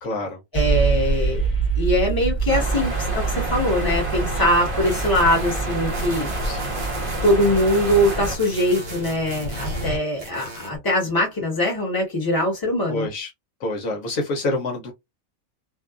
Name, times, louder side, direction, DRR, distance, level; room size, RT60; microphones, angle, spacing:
voice 1, 0.0-0.4 6.4-6.9 12.9-13.3 13.6-14.9, left 2 dB, 70° left, 1.1 m, -27 dB
sound 1, 0.5-10.0, right 5 dB, 40° left, 1.2 m, -27 dB
voice 2, 0.5-1.4 1.8-6.3 7.2-13.1, left 1 dB, 15° left, 1.0 m, -22 dB
sound 2, 2.5-8.4, right 1 dB, 35° right, 0.6 m, -28 dB
sound 3, 4.8-9.9 10.2-10.8, equal, 55° right, 1.3 m, -35 dB
2.7 x 2.3 x 2.3 m
omnidirectional pair, 1.5 m